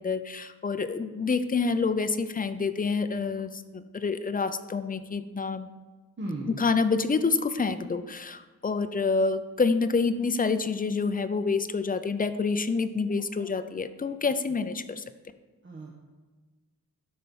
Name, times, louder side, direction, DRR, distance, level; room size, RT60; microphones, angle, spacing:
voice 1, 0.0-5.7 6.5-15.0, left 4 dB, 25° left, 11 dB, 0.4 m, -27 dB
voice 2, 6.2-6.5 15.6-16.0, right 2 dB, 35° right, -3 dB, 1.2 m, -35 dB
12.0 x 4.4 x 5.4 m, 1.3 s
wide cardioid pair, 155°, 35 cm